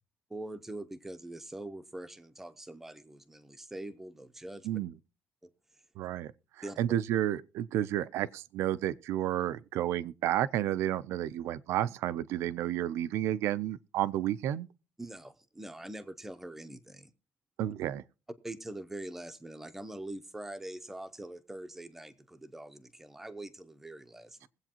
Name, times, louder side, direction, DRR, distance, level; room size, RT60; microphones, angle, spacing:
voice 1, 0.3-4.8 5.4-5.5 6.6-6.8 15.0-17.1 18.4-24.5, right 1 dB, 5° right, 0.7 m, -43 dB
voice 2, 4.6-4.9 6.0-6.3 6.6-14.7 17.6-18.0, right 12 dB, 75° right, 0.5 m, -31 dB
21.5 x 8.1 x 2.9 m
cardioid pair, 170°, 5 cm